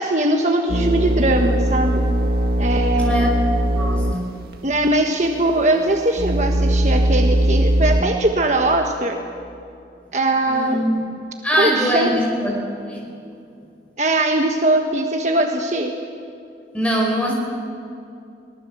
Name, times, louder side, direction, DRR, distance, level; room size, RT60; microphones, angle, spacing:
voice 1, 0.0-2.0 2.6-3.2 4.6-9.2 10.1-10.8 11.6-12.2 14.0-15.9, right 1 dB, 40° right, 3 dB, 1.4 m, -20 dB
sound 1, 0.7-4.2 4.5-4.6 5.3-8.0, right 1 dB, 55° right, 2.0 m, -20 dB
voice 2, 3.0-3.3 3.7-4.3 10.5-11.0 11.4-12.6 12.9-13.0 16.7-17.3, equal, 5° left, -2 dB, 5.6 m, -22 dB
23.5 x 19.0 x 7.5 m, 2.5 s
head